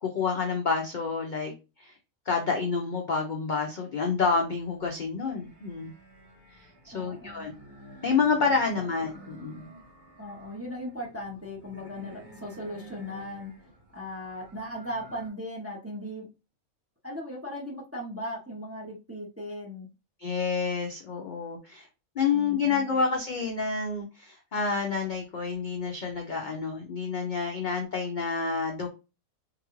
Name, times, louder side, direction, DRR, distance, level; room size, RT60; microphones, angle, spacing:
voice 1, 0.0-1.5 1.8-1.9 2.3-5.9 6.6-7.5 8.0-9.7 20.2-21.9 22.2-28.9, left 5 dB, 60° left, 2 dB, 0.5 m, -28 dB
sound 1, 4.1-15.3, right 2 dB, 50° right, 2.2 m, -51 dB
voice 2, 6.9-7.6 8.8-8.9 10.2-13.5 13.9-16.3 17.0-19.9 22.3-22.9, equal, 15° right, -2 dB, 0.6 m, -38 dB
3.8 x 2.4 x 3.0 m, 0.29 s
omnidirectional pair, 1.5 m